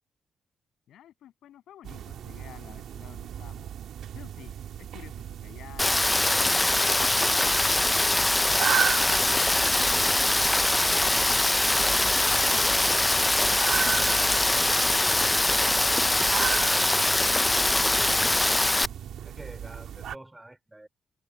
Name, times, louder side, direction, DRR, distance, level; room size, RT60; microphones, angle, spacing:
voice 1, 0.9-3.7 4.1-10.3 10.7-11.1 11.8-12.9 13.7-16.2 17.1-17.7, left 11 dB, 85° left, 7.7 m, -51 dB
sound 1, 1.8-20.2, right 9 dB, 80° right, 1.5 m, -36 dB
Rain, 5.8-18.9, left 2 dB, 10° left, 0.3 m, -23 dB
voice 2, 19.2-20.9, right 1 dB, 10° right, 3.6 m, -46 dB
cardioid pair, 135°, 0 cm